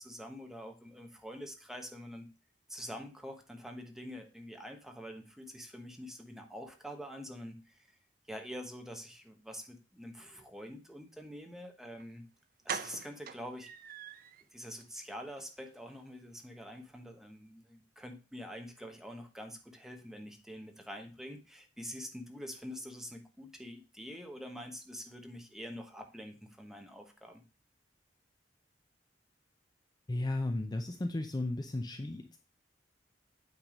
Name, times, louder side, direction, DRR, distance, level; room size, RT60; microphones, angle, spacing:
voice 1, 0.0-2.3 2.7-7.8 8.3-12.3 12.6-13.7 14.5-27.4, equal, 5° right, 3 dB, 1.1 m, -46 dB
sound 1, 12.0-12.1 12.7-14.4 14.8-14.9 15.3-15.4 15.7-15.8, right 7 dB, 55° right, 0.5 m, -42 dB
voice 2, 30.1-32.4, left 2 dB, 25° left, 5 dB, 0.5 m, -34 dB
8.7 x 3.5 x 5.2 m, 0.33 s
head